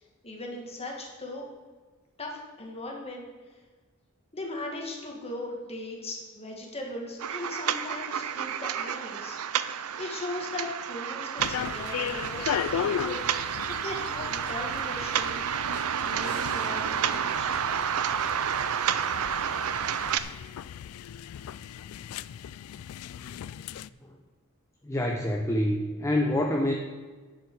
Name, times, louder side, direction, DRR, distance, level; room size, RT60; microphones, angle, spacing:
voice 1, 0.2-1.5 2.2-3.6 4.3-9.4 10.0-13.3 13.7-15.4 16.0-17.5, left 2 dB, 30° left, 0 dB, 2.0 m, -38 dB
sound 1, 7.2-20.2, right 8 dB, 80° right, 0.5 m, -30 dB
sound 2, 11.4-23.9, left 9 dB, 75° left, 0.3 m, -37 dB
voice 2, 24.8-26.7, left 1 dB, 15° left, 1 dB, 0.7 m, -26 dB
10.0 x 7.6 x 4.8 m, 1.4 s
head